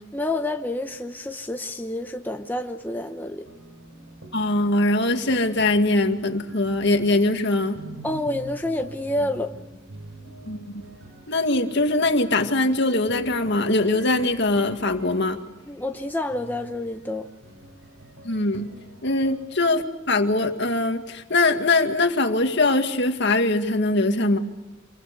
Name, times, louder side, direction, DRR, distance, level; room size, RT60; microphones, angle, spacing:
voice 1, 0.1-3.5 8.0-9.5 15.7-17.3, left 1 dB, 10° left, 0.9 m, -28 dB
sound 1, 3.4-19.5, equal, 70° right, 4.4 m, -45 dB
voice 2, 4.3-7.8 10.5-10.8 11.3-15.4 18.2-18.7 19.0-24.4, left 2 dB, 60° left, 2.1 m, -22 dB
27.0 x 23.0 x 6.8 m
head